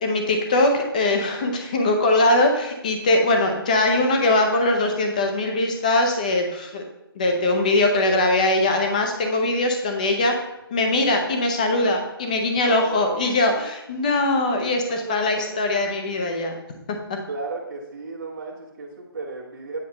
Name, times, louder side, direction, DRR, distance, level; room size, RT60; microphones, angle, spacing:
voice 1, 0.0-6.8 7.2-10.3 10.7-16.5, left 2 dB, 20° left, 3 dB, 0.7 m, -21 dB
voice 2, 12.6-13.3 14.9-15.6 17.3-19.9, right 3 dB, 45° right, -7 dB, 1.6 m, -34 dB
8.9 x 4.1 x 5.3 m, 0.91 s
hypercardioid pair, 175°, 13 cm